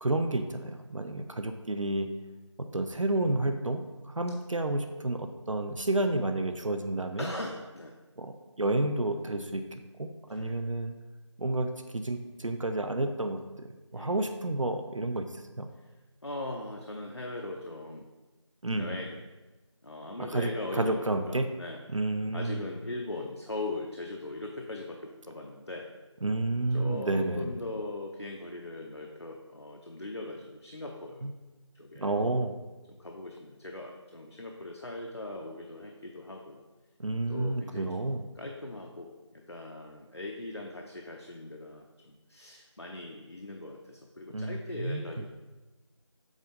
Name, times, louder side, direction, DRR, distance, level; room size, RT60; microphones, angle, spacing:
voice 1, 0.0-2.1 2.6-7.3 8.2-10.9 11.4-13.7 13.9-15.7 18.6-19.0 20.2-21.5 21.9-22.6 26.2-27.5 31.2-31.3 32.0-32.6 37.0-38.2 44.3-45.0, right 2 dB, 80° right, 7 dB, 0.6 m, -30 dB
voice 2, 7.2-8.0 10.3-10.6 13.9-14.2 16.2-18.1 18.8-19.3 19.8-21.8 22.3-25.9 26.7-31.2 31.7-32.2 32.9-36.6 37.3-38.1 38.4-45.3, left 2 dB, 60° left, 1 dB, 0.6 m, -40 dB
7.3 x 3.9 x 3.7 m, 1.2 s
figure-of-eight pair, 175°, 16 cm